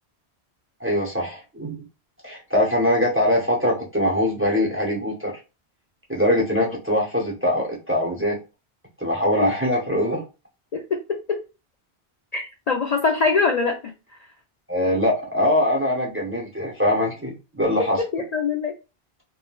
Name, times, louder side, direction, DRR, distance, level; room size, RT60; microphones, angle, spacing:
voice 1, 0.8-1.8 2.2-5.4 6.1-8.4 9.0-10.2 14.7-18.0, left 1 dB, 15° right, -2 dB, 0.6 m, -22 dB
voice 2, 10.7-11.4 12.3-13.9 17.8-18.7, left 4 dB, 55° left, 2 dB, 0.4 m, -23 dB
3.6 x 2.1 x 2.3 m, 0.29 s
omnidirectional pair, 1.1 m